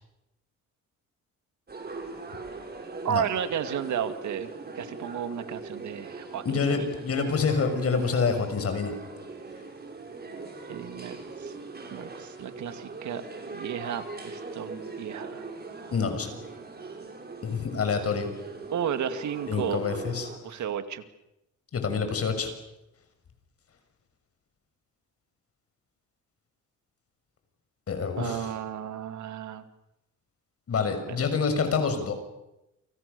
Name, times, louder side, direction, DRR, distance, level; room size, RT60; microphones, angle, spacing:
sound 1, 1.7-20.4, right 3 dB, 30° right, 6.5 m, -41 dB
voice 1, 3.0-6.9 10.7-11.6 11.9-15.5 18.7-20.0 20.4-21.0 28.2-29.7 31.1-31.2, right 9 dB, 70° right, 10 dB, 2.4 m, -33 dB
voice 2, 6.4-8.9 15.9-16.3 17.4-18.3 19.5-20.3 21.7-22.5 27.9-28.5 30.7-32.1, left 5 dB, 50° left, 7 dB, 6.7 m, -27 dB
29.5 x 25.0 x 7.0 m, 0.89 s
cardioid pair, 90°, 30 cm